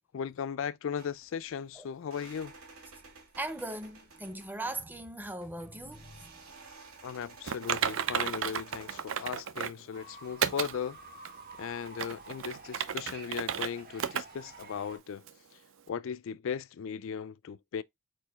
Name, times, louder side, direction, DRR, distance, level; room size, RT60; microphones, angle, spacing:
voice 1, 0.0-2.5 7.0-11.0 11.6-15.2 15.9-17.8, left 7 dB, 65° left, 0.4 m, -37 dB
sound 1, 1.0-9.5, right 4 dB, 85° right, 2.2 m, -53 dB
voice 2, 3.4-6.3, right 2 dB, 10° right, 0.6 m, -39 dB
Typing, 7.5-9.8 10.4-10.7 11.2-11.3 11.9-13.7 14.0-14.2 14.6-14.7 15.3-15.4, right 8 dB, 65° right, 0.6 m, -32 dB
Fowl / Bird, 9.9-15.0, right 3 dB, 45° right, 1.6 m, -50 dB
4.6 x 4.6 x 2.3 m
head